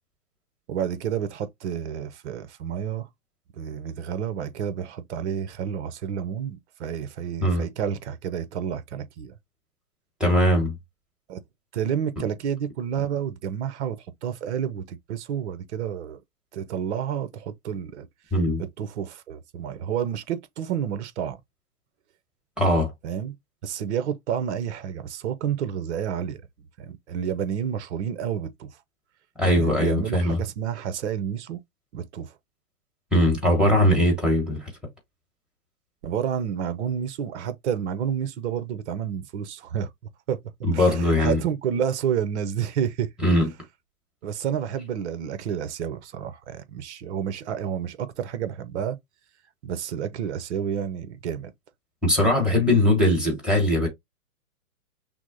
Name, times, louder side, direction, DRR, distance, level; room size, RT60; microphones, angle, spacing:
voice 1, 0.7-3.1 3.5-9.3 11.3-11.4 11.7-16.2 16.5-18.1 18.6-21.4 23.0-23.4 23.6-26.4 26.8-28.8 29.5-31.6 31.9-32.3 33.5-33.8 36.0-39.9 40.3-40.4 40.7-43.1 44.2-49.0 49.6-51.5, right 8 dB, 50° right, 0.9 m, -30 dB
voice 2, 10.2-10.7 18.3-18.6 22.6-22.9 29.4-30.4 33.1-34.7 40.6-41.4 43.2-43.5 52.0-53.9, left 1 dB, ahead, 1.5 m, -20 dB
6.0 x 2.1 x 3.8 m
hypercardioid pair, 140°, 44 cm